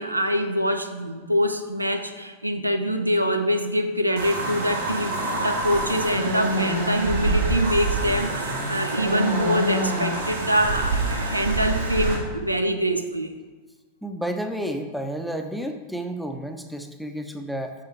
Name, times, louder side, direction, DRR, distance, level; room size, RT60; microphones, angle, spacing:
voice 1, 0.0-13.3, equal, 85° right, 6 dB, 0.6 m, -25 dB
sound 1, 4.2-12.1, right 2 dB, 65° right, 2.1 m, -26 dB
voice 2, 14.0-17.7, right 1 dB, ahead, 5 dB, 0.7 m, -31 dB
6.8 x 5.4 x 4.5 m, 1.3 s
figure-of-eight pair, 90°, 0 cm